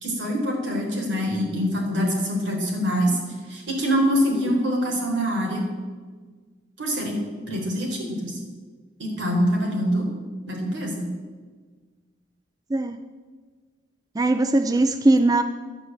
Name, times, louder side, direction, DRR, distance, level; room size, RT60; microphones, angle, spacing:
voice 1, 0.0-3.2 3.5-5.6 6.8-7.2 7.5-8.4 9.0-10.1 10.5-11.1, equal, 75° right, 0 dB, 4.0 m, -24 dB
voice 2, 14.2-15.4, right 2 dB, 20° right, 9 dB, 0.4 m, -19 dB
11.0 x 8.9 x 8.8 m, 1.5 s
head